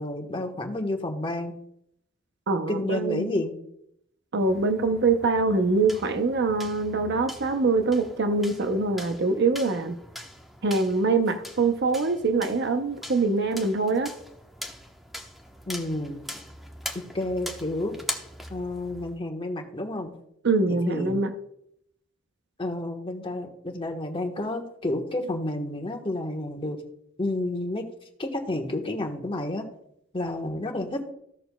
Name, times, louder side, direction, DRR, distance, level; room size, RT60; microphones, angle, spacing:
voice 1, 0.0-1.5 2.7-3.5 15.7-16.2 17.1-17.9 18.5-20.1 20.7-21.2 22.6-26.8 27.2-27.8 28.2-29.6 30.1-31.1, left 1 dB, 25° left, 3 dB, 1.2 m, -30 dB
voice 2, 2.5-3.3 4.3-10.0 10.6-14.1 20.4-21.3, right 3 dB, 60° right, 8 dB, 0.7 m, -24 dB
sound 1, 4.4-19.2, equal, ahead, 1.0 m, -42 dB
15.5 x 6.7 x 2.3 m, 0.74 s
head